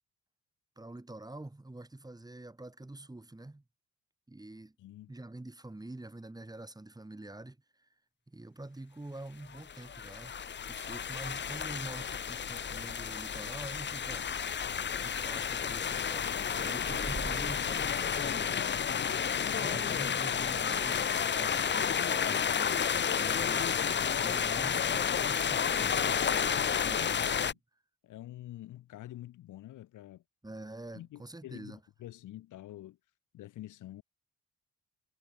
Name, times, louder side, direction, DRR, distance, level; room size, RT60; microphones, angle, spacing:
voice 1, 0.8-3.6 4.3-4.7 5.1-7.9 8.3-10.3 10.7-14.4 15.0-18.6 19.5-23.7 24.2-26.1 26.8-27.5 30.4-31.8, right 2 dB, 15° right, 6.2 m, -46 dB
voice 2, 4.8-5.1 19.6-20.0 26.5-27.6 28.0-30.2 30.9-33.0 33.3-34.0, left 14 dB, 80° left, 2.9 m, -47 dB
sound 1, 9.5-27.5, left 7 dB, 35° left, 1.0 m, -31 dB
sound 2, 16.8-23.5, right 4 dB, 30° right, 3.2 m, -49 dB
cardioid pair, 90°, 30 cm